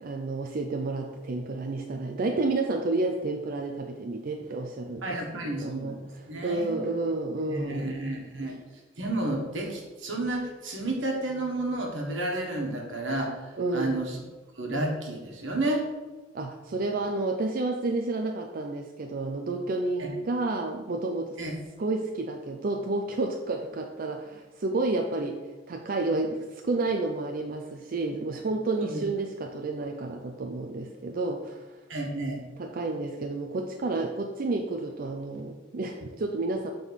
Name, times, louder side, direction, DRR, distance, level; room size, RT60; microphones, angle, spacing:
voice 1, 0.0-8.0 13.6-14.0 16.3-21.4 21.8-25.4 25.7-31.7 32.6-36.7, right 2 dB, 50° right, 3 dB, 0.5 m, -30 dB
voice 2, 5.0-6.9 7.4-8.6 9.0-14.2 14.6-15.8 20.0-20.1 21.4-21.5 28.8-29.0 31.9-32.4, right 2 dB, 80° right, 0 dB, 1.5 m, -31 dB
6.3 x 3.8 x 5.3 m, 1.2 s
head